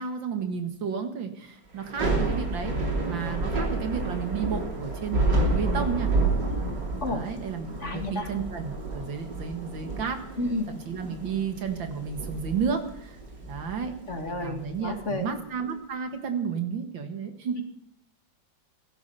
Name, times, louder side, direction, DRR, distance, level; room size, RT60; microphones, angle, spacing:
voice 1, 0.0-2.8 3.0-6.1 7.1-10.2 10.7-13.2 13.5-17.6, right 6 dB, 85° right, 6 dB, 2.6 m, -32 dB
Thunder / Rain, 1.8-15.0, right 2 dB, 65° right, 3.9 m, -30 dB
voice 2, 7.8-8.3 10.4-10.7 14.1-15.3, left 2 dB, 40° left, 4 dB, 2.5 m, -31 dB
16.5 x 13.0 x 5.7 m, 0.71 s
omnidirectional pair, 2.0 m